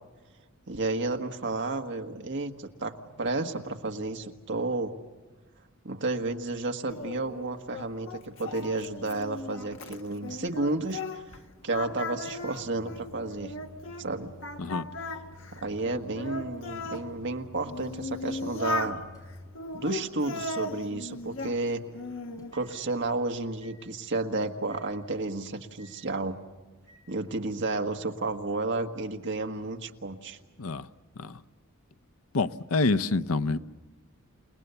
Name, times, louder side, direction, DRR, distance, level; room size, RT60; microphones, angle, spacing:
voice 1, 0.7-4.9 5.8-11.2 11.6-13.5 14.0-14.3 15.5-19.0 19.7-21.8 22.4-26.4 27.1-30.4, right 2 dB, 60° right, 1.6 m, -32 dB
Singing, 6.9-11.4 11.7-14.1 14.4-17.0 17.6-19.0 19.5-21.6 21.9-22.5, left 2 dB, 65° left, 1.5 m, -37 dB
Microwave oven, 10.6-23.2 23.6-23.8 24.7-24.9 25.8-25.9 26.9-27.0, left 2 dB, 20° left, 6.0 m, -52 dB
voice 2, 32.3-33.6, left 3 dB, 90° left, 0.7 m, -27 dB
29.0 x 19.0 x 7.0 m
head